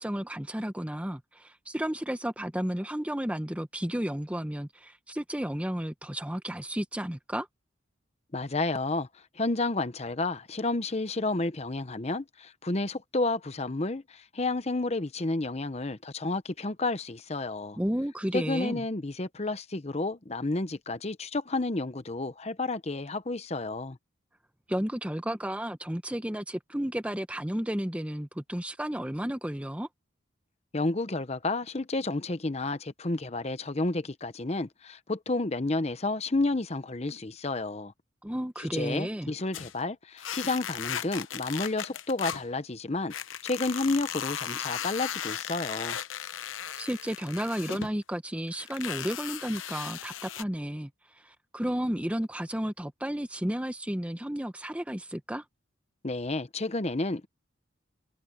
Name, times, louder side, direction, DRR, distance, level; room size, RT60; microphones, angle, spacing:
voice 1, 0.0-7.5 17.8-18.8 24.7-29.9 38.2-39.3 46.8-55.4, equal, 5° right, 0.7 m, -32 dB
voice 2, 8.3-9.1 9.4-17.8 18.3-24.0 30.7-37.9 38.7-43.1 43.4-46.0 56.0-57.3, left 2 dB, 35° left, 0.9 m, -31 dB
sound 1, 39.5-39.8 40.2-42.5 43.1-47.9 48.5-50.4, left 9 dB, 85° left, 0.9 m, -37 dB
head